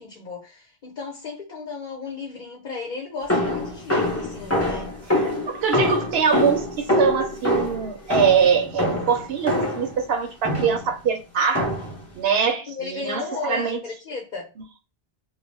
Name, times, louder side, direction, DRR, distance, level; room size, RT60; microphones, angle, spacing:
voice 1, 0.0-4.9 12.7-14.5, left 4 dB, 55° left, 0.9 m, -34 dB
sound 1, 3.3-9.9 10.4-10.9 11.5-12.0, left 1 dB, 15° left, 0.8 m, -24 dB
voice 2, 5.5-11.7 12.1-13.8, right 7 dB, 80° right, 0.8 m, -23 dB
2.3 x 2.1 x 3.1 m
omnidirectional pair, 1.0 m